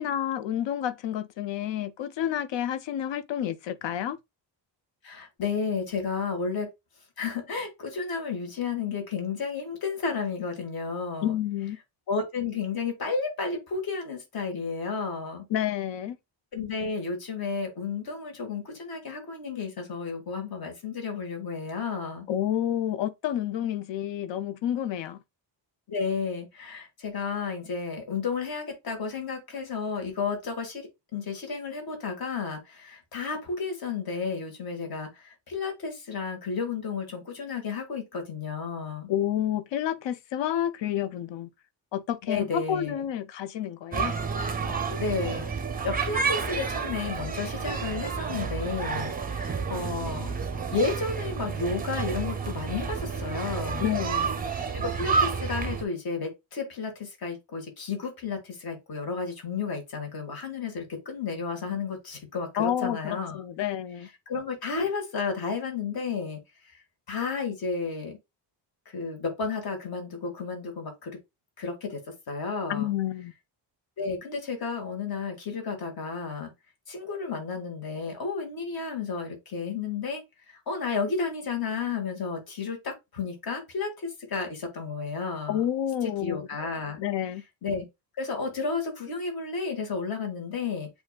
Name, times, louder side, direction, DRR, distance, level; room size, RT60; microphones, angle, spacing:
voice 1, 0.0-4.2 11.2-11.8 15.5-16.2 22.3-25.2 39.1-41.5 41.9-44.1 53.8-54.4 62.6-64.1 72.7-73.3 85.5-86.4 87.0-87.4, left 11 dB, 70° left, 0.6 m, -29 dB
voice 2, 5.0-6.7 7.2-11.4 12.1-15.4 16.5-22.3 25.9-39.1 42.3-43.0 45.0-50.3 50.7-53.9 54.7-63.4 64.3-66.8 67.1-68.2 68.9-71.2 71.6-72.0 72.3-72.9 74.0-76.5 76.9-80.2 80.5-85.7 86.0-87.0 87.6-87.9 88.2-90.9, left 5 dB, 50° left, 1.7 m, -32 dB
sound 1, 43.9-55.8, right 5 dB, 20° right, 0.5 m, -30 dB
8.0 x 2.7 x 2.2 m
wide cardioid pair, 175°, 46 cm